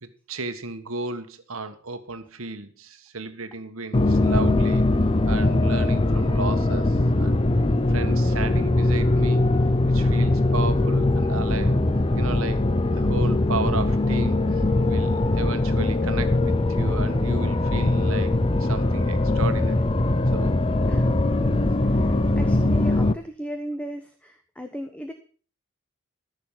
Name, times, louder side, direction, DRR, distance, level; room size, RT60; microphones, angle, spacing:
voice 1, 0.0-4.8 5.3-7.5 7.9-9.4 9.9-11.8 12.2-12.7 12.9-19.9 20.3-20.6, right 3 dB, 85° right, 9 dB, 1.5 m, -34 dB
sound 1, 3.9-23.1, left 2 dB, 25° left, 0.6 m, -21 dB
voice 2, 20.7-21.1 21.4-25.1, equal, 5° left, 6 dB, 1.0 m, -37 dB
14.5 x 6.7 x 7.4 m, 0.42 s
head